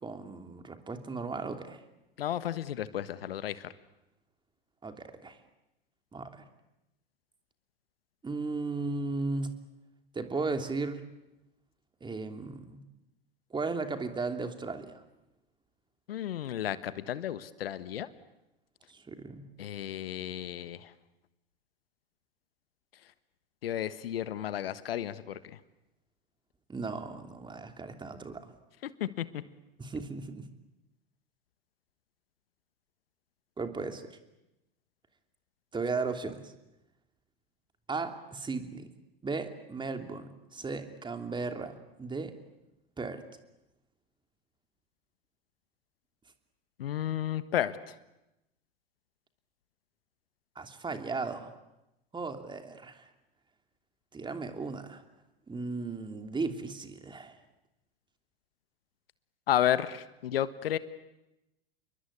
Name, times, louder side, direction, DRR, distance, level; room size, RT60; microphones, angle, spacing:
voice 1, 0.0-1.8 4.8-5.4 6.1-6.4 8.2-9.5 10.1-11.1 12.0-12.8 13.5-15.0 18.9-19.5 26.7-28.5 29.8-30.5 33.6-34.2 35.7-36.5 37.9-38.9 39.2-42.3 43.0-43.2 50.5-51.5 52.1-53.1 54.1-55.0 55.5-57.4, right 3 dB, 15° right, 7 dB, 3.0 m, -36 dB
voice 2, 2.2-3.7 16.1-18.1 19.6-20.9 23.6-25.4 29.0-29.4 46.8-47.9 59.5-60.8, left 11 dB, 70° left, 14 dB, 1.4 m, -32 dB
29.0 x 22.5 x 8.5 m, 0.91 s
figure-of-eight pair, 90°, 31 cm